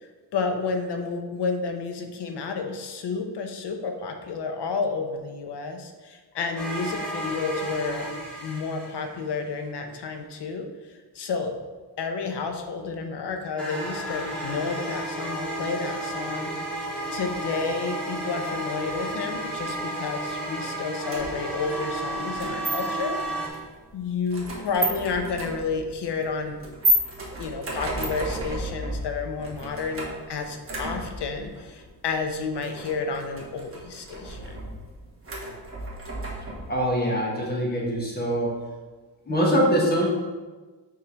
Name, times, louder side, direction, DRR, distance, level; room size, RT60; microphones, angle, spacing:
voice 1, 0.3-8.0 8.4-10.7 11.1-11.6 12.0-23.2 23.9-26.6 27.4-34.7, left 4 dB, 80° left, 5 dB, 0.9 m, -31 dB
sound 1, 6.6-9.3 13.6-23.5, right 1 dB, 5° left, 1.4 m, -32 dB
sound 2, 21.1-36.9, right 1 dB, 35° right, 1.2 m, -33 dB
voice 2, 36.7-38.5 39.3-40.1, equal, 25° left, -2 dB, 1.3 m, -23 dB
6.2 x 3.8 x 4.5 m, 1.3 s
wide cardioid pair, 170°, 40 cm